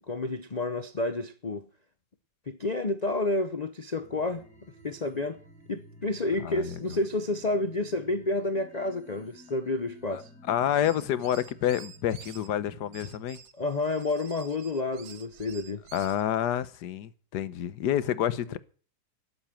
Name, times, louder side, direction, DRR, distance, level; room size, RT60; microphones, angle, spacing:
voice 1, 0.1-1.7 2.5-4.4 4.8-5.4 5.7-10.3 13.6-15.8, left 2 dB, 80° left, 0.3 m, -30 dB
sound 1, 4.0-13.2, equal, 5° left, 3.0 m, -53 dB
voice 2, 6.4-6.8 10.1-10.2 10.5-13.4 15.9-18.6, left 10 dB, 65° left, 1.4 m, -28 dB
sound 2, 10.7-12.5 12.9-16.2, right 8 dB, 65° right, 1.5 m, -50 dB
12.5 x 8.2 x 8.8 m
omnidirectional pair, 2.0 m